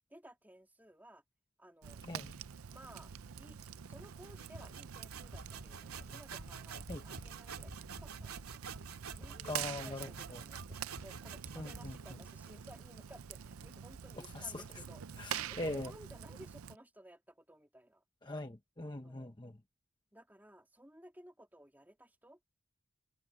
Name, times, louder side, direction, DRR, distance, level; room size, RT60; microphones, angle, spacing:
voice 1, 0.1-1.2 1.6-2.0 2.7-3.1 3.4-3.6 3.9-8.6 9.2-18.0 19.0-19.3 20.1-22.4, right 1 dB, 10° right, 3.0 m, -57 dB
Fire, 1.8-16.8, right 8 dB, 75° right, 0.5 m, -46 dB
sound 1, 4.0-12.6, right 5 dB, 90° right, 2.6 m, -49 dB
voice 2, 9.5-10.4 11.6-11.9 14.3-14.6 15.2-15.9 18.2-19.6, left 2 dB, 20° left, 1.0 m, -41 dB
head